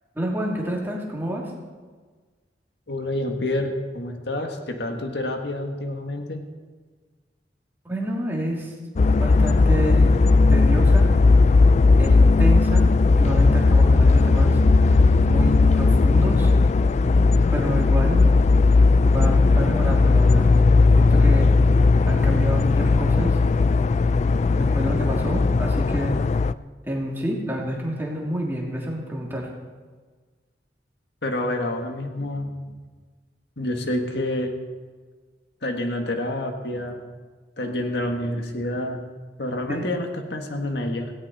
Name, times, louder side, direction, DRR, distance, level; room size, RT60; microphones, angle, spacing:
voice 1, 0.1-1.5 7.8-8.7 9.1-10.2 10.5-11.1 12.0-16.5 17.5-18.3 19.0-20.5 20.9-21.5 22.1-23.4 24.5-26.2 26.8-29.5 39.7-39.9, equal, 15° right, -2 dB, 2.9 m, -28 dB
voice 2, 2.9-6.5 31.2-32.5 33.6-34.5 35.6-37.0 37.6-39.0 39.4-41.1, left 1 dB, 65° left, 3 dB, 1.8 m, -28 dB
sound 1, 9.0-26.5, left 3 dB, 40° left, 0.3 m, -17 dB
17.5 x 17.5 x 4.2 m, 1.4 s
head